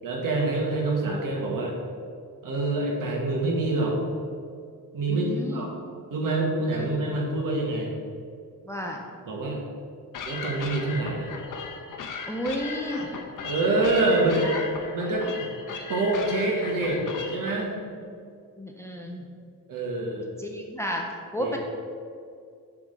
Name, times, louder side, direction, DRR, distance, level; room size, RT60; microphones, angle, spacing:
voice 1, 0.0-1.7 2.4-4.0 4.9-5.7 6.1-7.9 9.3-9.6 10.2-11.3 13.4-14.4 14.9-15.5 15.9-17.0 17.3-17.7 19.7-20.3 21.4-21.5, right 2 dB, 65° right, -1 dB, 1.6 m, -26 dB
voice 2, 5.1-5.7 6.8-6.9 8.7-9.0 12.3-13.1 14.2-14.6 18.1-18.2 18.6-19.3 20.4-21.0 21.3-21.6, equal, 10° left, 0 dB, 0.5 m, -32 dB
sound 1, 10.1-17.5, left 5 dB, 65° left, 0.9 m, -37 dB
7.3 x 3.8 x 6.5 m, 2.3 s
wide cardioid pair, 175°, 35 cm